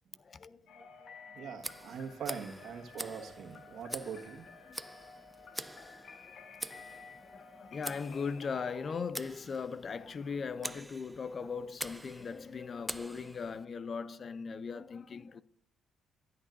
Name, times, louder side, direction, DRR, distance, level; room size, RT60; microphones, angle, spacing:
voice 1, 0.2-1.1 4.6-4.9 5.5-6.4 6.9-15.4, left 5 dB, 45° left, 0.5 m, -40 dB
sound 1, 0.7-9.0, left 5 dB, 65° left, 1.4 m, -53 dB
voice 2, 1.3-4.5, right 6 dB, 70° right, 1.6 m, -42 dB
Tick, 1.6-13.7, right 1 dB, 10° right, 0.5 m, -46 dB
13.0 x 8.7 x 2.6 m
cardioid pair, 90°, 0 cm